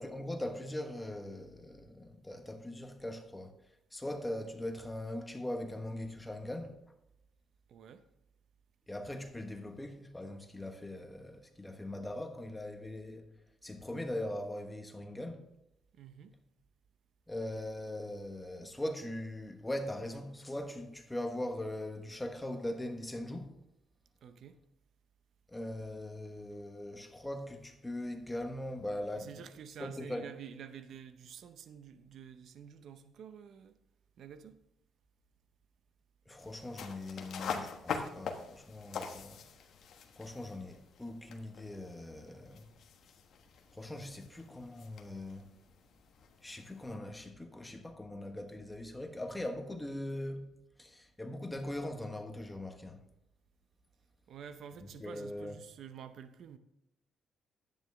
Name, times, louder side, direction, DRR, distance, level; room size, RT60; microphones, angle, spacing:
voice 1, 0.0-3.5 3.9-6.8 8.9-13.4 13.6-15.4 17.3-23.5 25.5-29.4 29.8-30.3 36.3-39.4 40.1-42.7 43.7-45.5 46.4-50.5 50.8-53.0 54.8-55.5, left 1 dB, 10° left, 1.2 m, -41 dB
voice 2, 7.7-8.0 16.0-16.3 24.2-24.6 29.1-33.8 34.2-34.6 54.3-56.6, right 8 dB, 70° right, 0.7 m, -49 dB
sound 1, 36.4-47.0, left 6 dB, 65° left, 1.3 m, -44 dB
11.0 x 9.0 x 3.5 m
cardioid pair, 90°, 0 cm